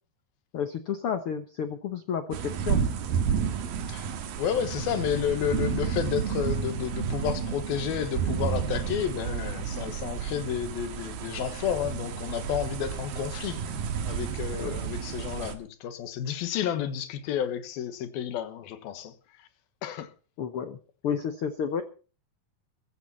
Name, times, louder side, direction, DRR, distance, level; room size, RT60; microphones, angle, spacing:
voice 1, 0.5-2.8 14.6-14.8 20.4-20.8 21.0-21.8, left 7 dB, 70° left, 1.3 m, -31 dB
sound 1, 2.3-15.5, right 7 dB, 85° right, 3.4 m, -31 dB
voice 2, 4.4-13.8 14.1-19.1 19.8-20.1, left 9 dB, 90° left, 3.3 m, -31 dB
15.0 x 14.5 x 4.3 m
omnidirectional pair, 4.1 m